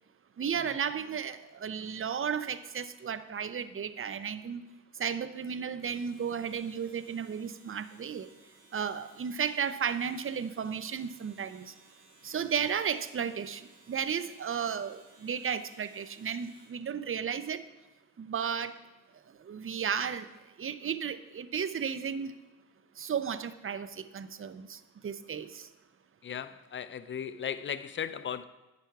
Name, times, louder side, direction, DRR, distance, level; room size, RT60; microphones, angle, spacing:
voice 1, 0.4-4.6 5.0-8.3 8.7-11.7 12.2-17.6 18.2-18.7 19.5-20.3 20.6-22.3 23.0-25.7, right 7 dB, 35° right, 0.6 m, -34 dB
Domestic sounds home sounds, 5.8-16.8, right 2 dB, 70° right, 3.0 m, -61 dB
voice 2, 26.2-28.4, left 8 dB, 30° left, 0.5 m, -36 dB
9.2 x 5.2 x 4.7 m
supercardioid pair, 60°, 38 cm